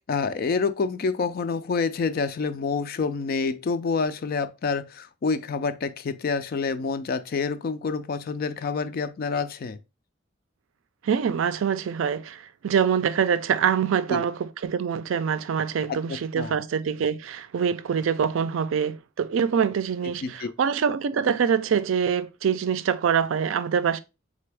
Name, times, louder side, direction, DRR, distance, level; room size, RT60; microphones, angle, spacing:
voice 1, 0.1-9.8 14.1-14.2 16.1-16.5 20.2-20.5, left 4 dB, 50° left, 0.4 m, -27 dB
voice 2, 11.0-24.0, right 7 dB, 85° right, 0.4 m, -25 dB
3.8 x 3.4 x 3.3 m
head